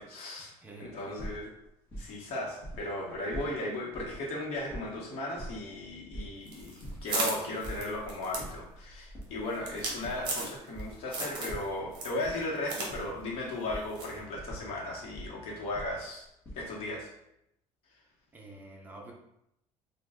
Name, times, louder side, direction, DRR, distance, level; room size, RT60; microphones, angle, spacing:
voice 1, 0.0-0.5 0.8-1.5 2.0-16.2 16.5-17.1, left 2 dB, 55° left, -3 dB, 1.0 m, -36 dB
voice 2, 0.6-1.3 18.3-19.1, right 2 dB, 15° right, -1 dB, 0.6 m, -48 dB
sound 1, 1.2-2.3 2.6-3.5 3.9-4.2 4.5-6.4 6.8-7.0 7.3-7.9 8.3-8.6 9.1-11.0 11.5-12.4 12.7-13.2 13.7-13.9 14.3-15.3 15.7-16.7, right 1 dB, 15° left, 1.1 m, -43 dB
sound 2, 6.5-10.8 11.1-11.6 11.9-12.9 13.2-13.3 14.0-14.2, right 2 dB, 40° right, 0.8 m, -35 dB
3.1 x 2.2 x 3.5 m, 0.81 s
cardioid pair, 165°, 12 cm